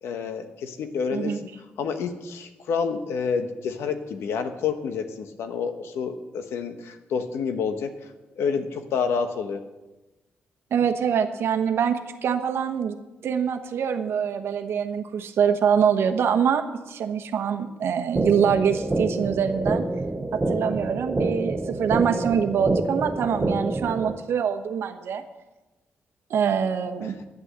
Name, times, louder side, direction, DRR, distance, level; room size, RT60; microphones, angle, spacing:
voice 1, 0.0-1.3 1.8-7.9 8.4-9.6 27.0-27.2, left 6 dB, 85° left, 7 dB, 1.2 m, -28 dB
voice 2, 10.7-13.0 13.2-19.8 20.3-25.2 26.3-27.2, right 7 dB, 75° right, 8 dB, 1.1 m, -24 dB
sound 1, 18.2-24.2, right 2 dB, 20° right, 1.0 m, -27 dB
11.0 x 8.4 x 7.5 m, 1.1 s
cardioid pair, 75°, 4 cm